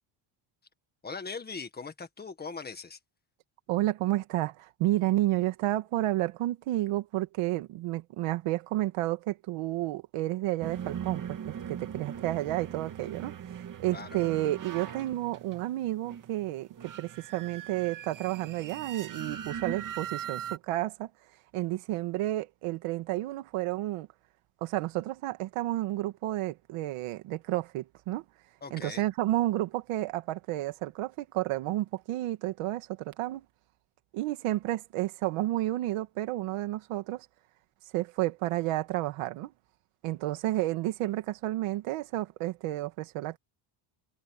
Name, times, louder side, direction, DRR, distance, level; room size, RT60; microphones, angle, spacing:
voice 1, 1.0-3.0 13.9-14.4 28.6-29.0, left 4 dB, 20° left, 1.8 m, -40 dB
voice 2, 3.7-13.3 13.8-21.1 21.5-24.1 24.6-28.3 28.7-33.5 34.1-37.3 37.9-39.5 40.0-43.4, right 16 dB, 90° right, 2.1 m, -31 dB
sound 1, 10.6-20.6, right 8 dB, 40° right, 2.5 m, -40 dB
cardioid pair, 165°, 50 cm